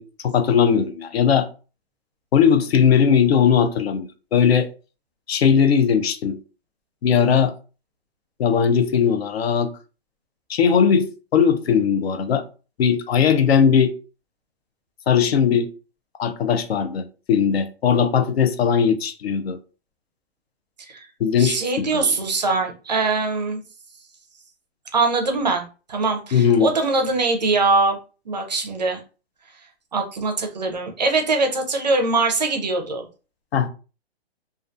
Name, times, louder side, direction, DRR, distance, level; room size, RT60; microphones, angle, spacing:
voice 1, 0.0-1.5 2.3-4.7 5.3-6.4 7.0-7.5 8.4-9.7 10.5-12.4 12.8-13.9 15.1-15.7 16.2-19.6 21.2-22.1 26.3-26.7 33.5-33.7, left 7 dB, 70° left, 0.5 m, -19 dB
voice 2, 21.4-23.6 24.9-28.0 28.3-29.0 29.9-33.0, right 3 dB, 40° right, 0.4 m, -22 dB
2.3 x 2.2 x 2.5 m
hypercardioid pair, 175°, 32 cm